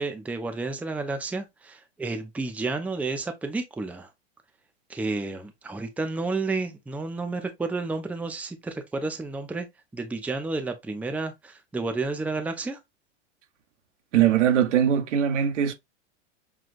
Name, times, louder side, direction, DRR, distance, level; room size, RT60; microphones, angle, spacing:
voice 1, 0.0-4.1 4.9-9.7 9.9-12.8, right 3 dB, 5° right, 0.6 m, -31 dB
voice 2, 14.1-15.7, right 9 dB, 80° right, 1.1 m, -21 dB
6.2 x 2.4 x 2.4 m
hypercardioid pair, 110°, 36 cm